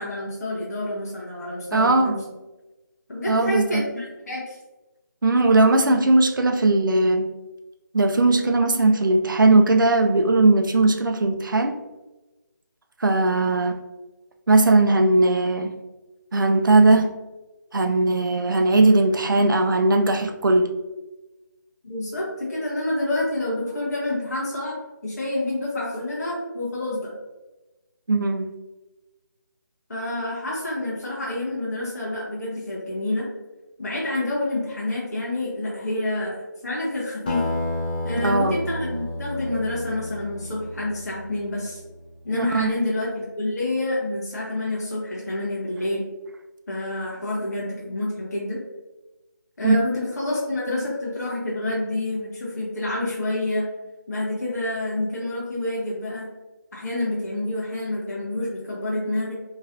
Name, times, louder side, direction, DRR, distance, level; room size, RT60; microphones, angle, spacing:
voice 1, 0.0-2.2 3.1-4.6 21.8-27.1 29.9-33.3 33.8-37.5 38.0-41.8 42.2-46.0 46.7-48.6 49.6-53.7 54.1-56.3 56.7-59.3, left 1 dB, 55° left, -6 dB, 1.0 m, -28 dB
voice 2, 1.7-2.2 3.3-3.8 5.2-7.3 7.9-11.7 13.0-13.8 14.5-15.7 16.3-17.1 17.7-20.7 28.1-28.5 38.2-38.5 42.4-42.7 49.6-49.8, right 2 dB, 80° right, 6 dB, 0.4 m, -18 dB
Acoustic guitar, 37.3-42.1, left 1 dB, 25° left, 0.4 m, -31 dB
3.0 x 2.8 x 2.5 m, 1.1 s
figure-of-eight pair, 160°, 11 cm